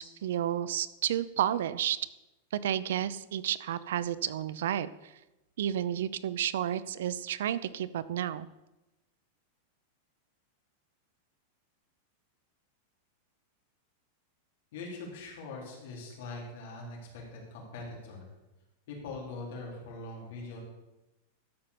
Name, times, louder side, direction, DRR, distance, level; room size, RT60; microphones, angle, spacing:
voice 1, 0.0-2.0 2.6-5.1 5.6-8.5, right 11 dB, 75° right, 16 dB, 0.6 m, -31 dB
voice 2, 14.7-18.3 18.9-20.6, left 3 dB, 60° left, -2 dB, 4.3 m, -42 dB
13.0 x 5.8 x 6.9 m, 0.99 s
supercardioid pair, 165°, 0 cm